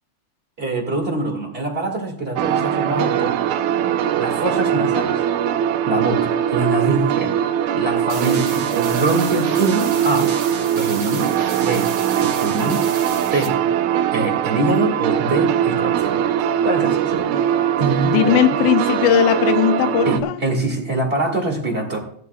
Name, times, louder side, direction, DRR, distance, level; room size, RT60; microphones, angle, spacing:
voice 1, 0.6-3.4 4.2-5.2 5.9-7.3 7.7-10.3 10.7-11.3 11.6-11.9 12.2-12.9 13.3-13.6 14.1-16.2 16.6-18.5 20.1-22.0, right 2 dB, 20° right, 1.8 m, -24 dB
sound 1, 2.4-20.2, right 9 dB, 80° right, 1.9 m, -21 dB
sound 2, 8.1-13.5, right 6 dB, 55° right, 2.0 m, -32 dB
voice 2, 18.0-20.4, left 10 dB, 90° left, 2.2 m, -18 dB
17.0 x 11.0 x 2.3 m
omnidirectional pair, 3.5 m